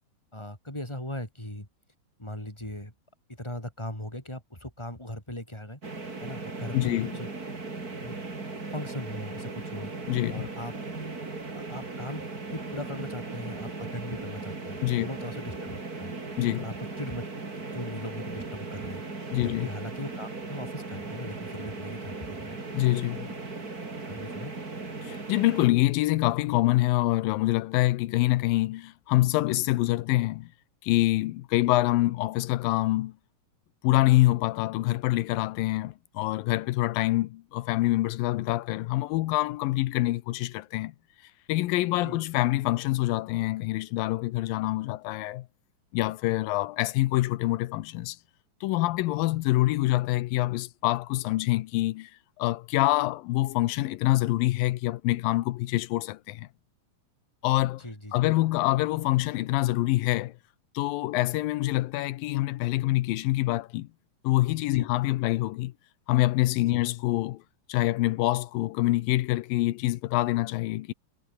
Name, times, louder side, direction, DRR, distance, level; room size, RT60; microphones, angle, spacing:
voice 1, 0.3-1.7 2.2-2.9 3.3-5.8 6.2-7.3 8.0-8.2 8.7-9.9 10.3-10.7 11.5-12.2 12.5-16.1 16.6-17.2 17.5-19.0 19.4-22.6 24.0-24.5 42.0-42.2 57.8-58.2 64.7-64.9 66.7-66.8, left 1 dB, 5° left, 6.2 m, -39 dB
sound 1, 5.8-25.7, right 3 dB, 25° right, 4.0 m, -38 dB
voice 2, 6.7-7.2 10.1-10.5 14.8-15.1 16.4-16.7 19.3-19.7 22.7-23.3 25.0-30.5 30.8-33.1 33.8-40.9 41.2-45.5 45.9-48.2 48.6-52.1 52.4-56.5 57.4-57.8 58.1-60.4 60.7-63.9 64.2-65.7 66.1-67.4 67.7-70.9, left 17 dB, 85° left, 2.6 m, -26 dB
omnidirectional pair, 4.0 m